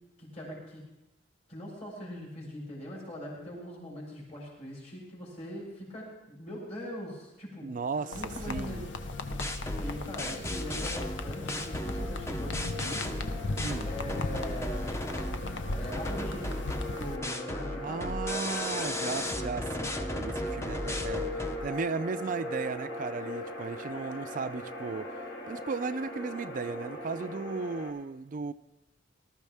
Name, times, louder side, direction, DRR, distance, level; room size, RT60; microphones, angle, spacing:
voice 1, 0.2-0.8 1.5-7.7 8.0-8.8 9.8-13.1 13.8-15.0 15.7-16.5 16.9-18.0, left 1 dB, 40° left, 4.5 m, -41 dB
voice 2, 7.6-8.9 13.6-13.9 17.8-25.1 25.5-28.5, right 4 dB, 45° right, 0.4 m, -36 dB
sound 1, 7.9-27.9, left 1 dB, 60° left, 2.2 m, -40 dB
sound 2, 8.1-17.2, left 2 dB, 80° left, 0.8 m, -37 dB
sound 3, 9.3-15.5 15.9-21.6, left 1 dB, 15° left, 0.7 m, -36 dB
19.0 x 13.0 x 3.5 m
head